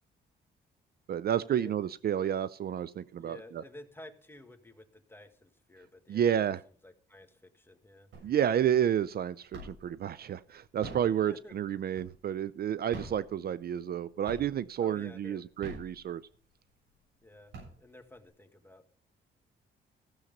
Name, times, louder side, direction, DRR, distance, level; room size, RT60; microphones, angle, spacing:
voice 1, 1.1-3.6 6.1-6.6 8.2-16.2, right 9 dB, 50° right, 17 dB, 0.5 m, -30 dB
voice 2, 3.2-6.4 6.8-8.3 11.3-11.5 14.8-15.5 17.2-18.8, left 1 dB, 10° left, 7 dB, 1.7 m, -51 dB
sound 1, 8.1-8.6 9.0-10.0 10.6-12.4 12.8-14.0 14.3-14.8 15.4-16.5 17.0-17.1 17.3-18.2, right 2 dB, 80° right, 7.1 m, -45 dB
15.0 x 7.2 x 5.3 m, 0.43 s
cardioid pair, 90°, 20 cm